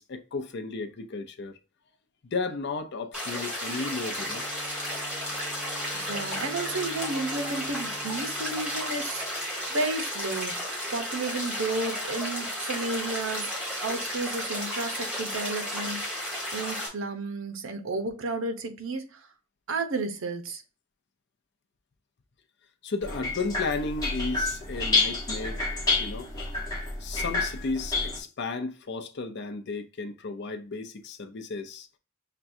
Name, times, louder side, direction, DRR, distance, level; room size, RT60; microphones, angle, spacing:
voice 1, 0.0-1.6 2.2-4.5 22.8-25.7 26.0-26.3 27.0-31.9, left 3 dB, 60° left, 0.6 m, -34 dB
sound 1, 3.1-16.9, equal, 5° right, 1.5 m, -33 dB
Bowed string instrument, 4.0-9.7, equal, 35° right, 2.1 m, -48 dB
voice 2, 5.9-10.6 10.9-13.5 13.8-19.3 19.7-20.6, right 3 dB, 75° right, 0.7 m, -32 dB
sound 2, 23.0-28.2, left 3 dB, 20° left, 1.2 m, -29 dB
5.9 x 2.3 x 2.6 m
head